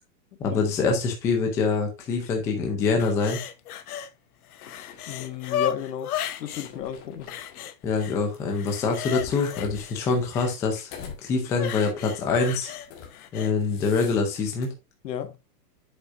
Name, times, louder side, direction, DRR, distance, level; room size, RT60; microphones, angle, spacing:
voice 1, 0.4-3.4 7.8-10.9 11.2-12.7 13.3-14.7, left 4 dB, 5° left, 0.5 m, -25 dB
sound 1, 3.0-4.1 4.4-6.7 7.3-8.2 8.5-10.5 11.5-13.5 14.0-14.2, left 10 dB, 65° left, 1.1 m, -34 dB
sound 2, 4.6-5.6 6.2-7.7 8.3-11.2 11.7-11.9 12.5-13.2 13.5-14.7, left 6 dB, 30° left, 1.8 m, -44 dB
voice 2, 5.1-7.4 15.0-15.4, left 9 dB, 80° left, 1.6 m, -33 dB
7.9 x 6.4 x 2.5 m
supercardioid pair, 160°, 49 cm